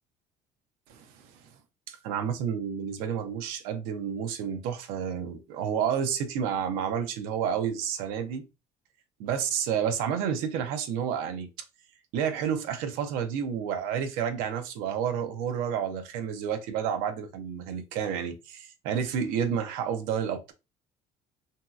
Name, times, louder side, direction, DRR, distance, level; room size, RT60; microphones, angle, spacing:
voice 1, 0.9-1.3 1.9-8.5 9.2-11.5 12.1-20.5, right 8 dB, 85° right, 0.6 m, -30 dB
3.0 x 2.7 x 2.3 m
cardioid pair, 100°, 15 cm